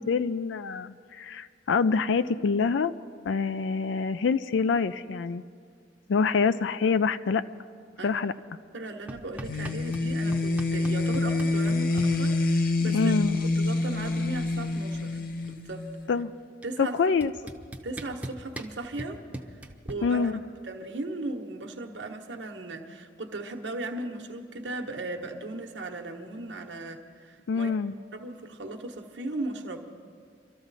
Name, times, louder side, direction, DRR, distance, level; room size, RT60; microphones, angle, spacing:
voice 1, 0.0-2.9 3.2-5.4 6.1-7.4 8.0-8.3 12.9-13.4 16.1-16.3 16.8-17.3 20.0-20.4 27.5-27.9, left 5 dB, 75° left, 13 dB, 0.4 m, -26 dB
voice 2, 8.7-13.1 13.6-15.2 15.4-15.9 16.6-17.0 17.8-19.2 19.8-20.3 20.7-27.7 28.1-29.8, right 2 dB, 70° right, 2 dB, 1.2 m, -37 dB
sound 1, 9.1-10.1 10.3-12.1 13.4-13.5 13.7-14.1 14.4-15.7 16.6-16.7 17.2-19.9, right 1 dB, 10° right, 0.7 m, -40 dB
sound 2, 9.4-16.1, left 2 dB, 45° left, 0.7 m, -27 dB
24.5 x 13.5 x 4.1 m, 2.1 s
head